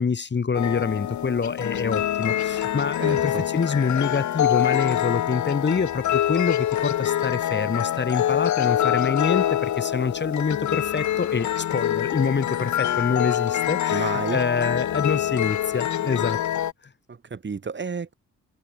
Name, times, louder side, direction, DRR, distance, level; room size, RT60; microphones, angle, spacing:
voice 1, 0.0-16.4, left 5 dB, 35° left, 4.3 m, -26 dB
sound 1, 0.5-16.7, left 11 dB, 65° left, 1.3 m, -25 dB
voice 2, 3.0-3.4 13.9-14.4 17.1-18.1, right 5 dB, 35° right, 7.6 m, -31 dB
cardioid pair, 100°, 31 cm